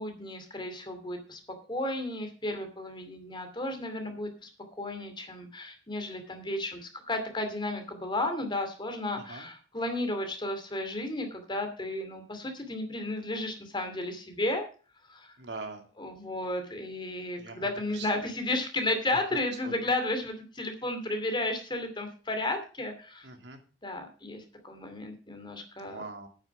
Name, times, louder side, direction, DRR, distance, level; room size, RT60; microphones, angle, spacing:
voice 1, 0.0-1.4 1.7-14.7 15.1-15.3 16.0-23.3 23.8-26.0, left 2 dB, 25° left, 6 dB, 2.5 m, -33 dB
voice 2, 15.4-15.8 17.4-17.7 17.9-18.3 19.1-19.2 19.6-19.7 23.2-23.6 25.8-26.3, right 3 dB, 80° right, 4 dB, 2.4 m, -42 dB
9.4 x 9.1 x 6.0 m, 0.37 s
head